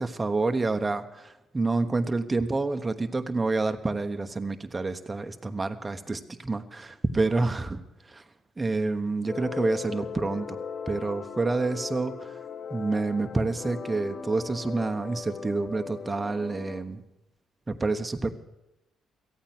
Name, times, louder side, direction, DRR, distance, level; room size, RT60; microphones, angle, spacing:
voice 1, 0.0-7.8 8.1-8.2 8.6-10.6 10.9-12.4 12.7-17.0 17.7-18.3, right 3 dB, 25° right, 7 dB, 1.1 m, -28 dB
sound 1, 9.3-16.8, left 6 dB, 50° left, 0.9 m, -38 dB
14.0 x 8.9 x 9.4 m, 0.92 s
supercardioid pair, 60°, 0 cm